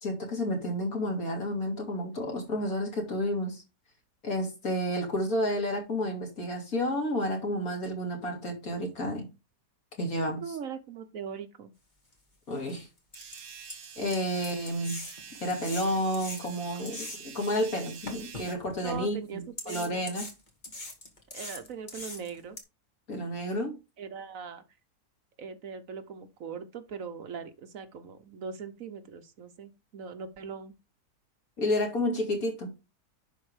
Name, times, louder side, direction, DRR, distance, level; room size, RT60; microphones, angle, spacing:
voice 1, 0.0-3.6 4.2-9.3 10.0-10.4 12.5-12.9 14.0-15.0 15.4-20.3 23.1-23.8 31.6-32.7, equal, 65° left, 3.3 m, -30 dB
voice 2, 10.4-11.7 18.8-19.9 21.3-22.6 24.0-24.6 25.4-30.7, right 6 dB, 60° right, 1.3 m, -40 dB
sound 1, 12.1-12.2 12.7-12.8 13.1-17.5 18.1-19.0 19.6-22.6, left 2 dB, 30° left, 2.4 m, -41 dB
Shaver portable electronic, 13.1-18.5, right 7 dB, 80° right, 1.8 m, -46 dB
11.0 x 4.4 x 4.9 m
omnidirectional pair, 1.6 m